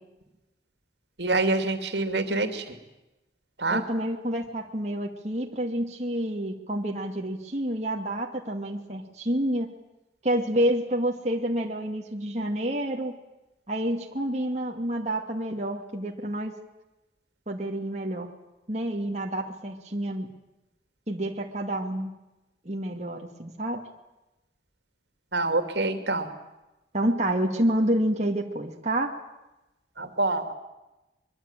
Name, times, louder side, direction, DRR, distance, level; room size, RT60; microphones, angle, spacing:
voice 1, 1.2-2.8 3.6-3.8 25.3-26.3 30.0-30.5, right 2 dB, 75° right, 8 dB, 2.8 m, -26 dB
voice 2, 3.7-9.7 10.2-13.1 13.7-16.5 17.5-18.3 18.7-20.3 21.1-22.1 22.6-23.8 26.9-29.1, right 1 dB, 40° right, 1 dB, 2.3 m, -28 dB
24.0 x 23.0 x 9.0 m, 0.99 s
head